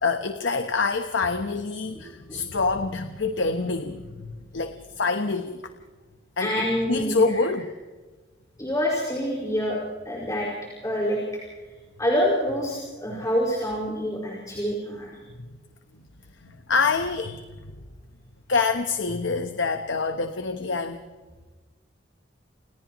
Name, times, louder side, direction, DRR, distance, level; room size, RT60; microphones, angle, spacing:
voice 1, 0.0-5.6 6.4-7.7 15.4-15.5 15.9-16.0 16.4-17.4 18.5-21.1, left 4 dB, 85° left, 7 dB, 1.2 m, -26 dB
voice 2, 6.4-7.5 8.6-10.5 10.8-11.2 12.0-15.1, equal, 20° left, -3 dB, 5.5 m, -26 dB
29.0 x 29.0 x 3.1 m, 1.3 s
head